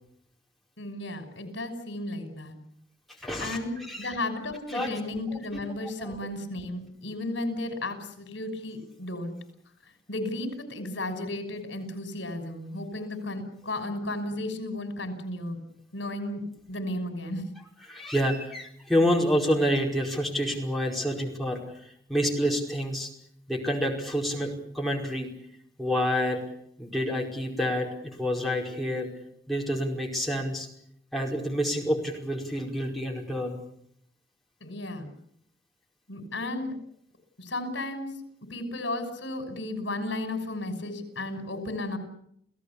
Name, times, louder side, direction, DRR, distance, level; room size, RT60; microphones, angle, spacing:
voice 1, 0.8-2.6 3.4-9.4 10.1-15.6 15.9-16.4 16.7-17.4 34.6-35.1 36.1-36.7 37.4-38.1 38.5-42.0, left 1 dB, 75° left, 8 dB, 6.0 m, -34 dB
voice 2, 3.2-4.2 4.7-4.9 6.0-6.1 17.9-23.1 23.5-25.3 25.8-26.4 26.8-29.1 29.5-30.7 31.1-33.6, equal, ahead, -2 dB, 5.0 m, -28 dB
29.0 x 17.0 x 8.5 m, 0.71 s
head